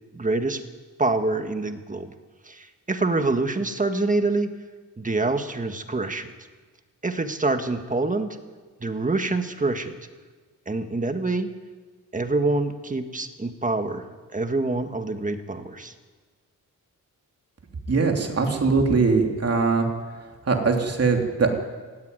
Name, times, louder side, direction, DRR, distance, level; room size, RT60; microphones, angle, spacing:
voice 1, 0.1-0.6 1.0-2.1 2.4-4.5 5.0-6.3 7.0-8.4 8.8-10.0 10.7-11.5 12.1-14.1 14.3-15.9, right 3 dB, 25° right, 7 dB, 1.6 m, -26 dB
voice 2, 17.9-19.9 20.5-21.5, right 4 dB, 45° right, 2 dB, 3.1 m, -21 dB
17.0 x 16.5 x 9.6 m, 1.4 s
wide cardioid pair, 125°, 34 cm